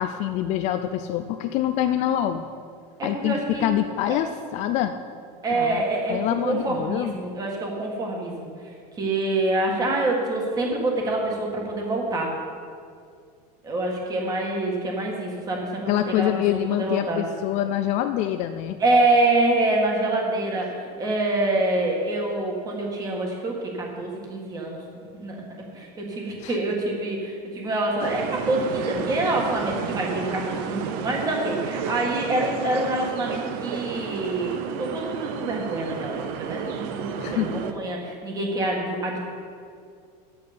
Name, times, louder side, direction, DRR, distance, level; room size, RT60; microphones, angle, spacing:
voice 1, 0.0-2.4 3.0-4.9 5.5-5.8 6.1-7.1 15.9-18.8 26.4-26.6 37.2-37.7, left 12 dB, 35° left, 8 dB, 0.4 m, -25 dB
voice 2, 3.0-3.7 5.4-8.5 9.0-12.3 13.6-17.2 18.8-24.8 25.1-25.4 25.7-39.2, right 2 dB, 15° right, -1 dB, 1.6 m, -26 dB
sound 1, 28.0-37.7, right 7 dB, 50° right, 0.8 m, -32 dB
11.5 x 9.4 x 5.1 m, 2.3 s
supercardioid pair, 165°, 21 cm